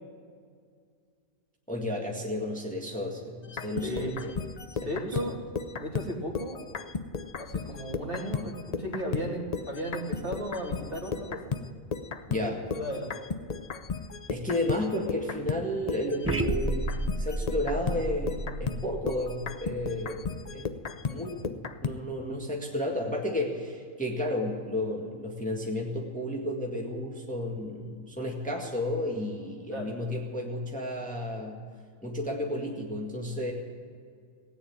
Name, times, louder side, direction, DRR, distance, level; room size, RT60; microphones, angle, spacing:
voice 1, 1.7-4.3 12.3-12.6 14.3-20.7 21.1-31.6 32.0-33.5, left 1 dB, 5° left, -1 dB, 1.8 m, -32 dB
sound 1, 3.4-9.3 9.5-22.0, left 5 dB, 40° left, 0.6 m, -35 dB
voice 2, 3.8-4.2 4.8-5.4 5.8-6.6 7.4-11.5 12.3-13.1 29.7-29.9, equal, 40° right, -1 dB, 2.8 m, -35 dB
sound 2, 16.2-20.4, right 1 dB, 20° right, 0.3 m, -32 dB
17.5 x 9.4 x 8.8 m, 2.2 s
omnidirectional pair, 1.5 m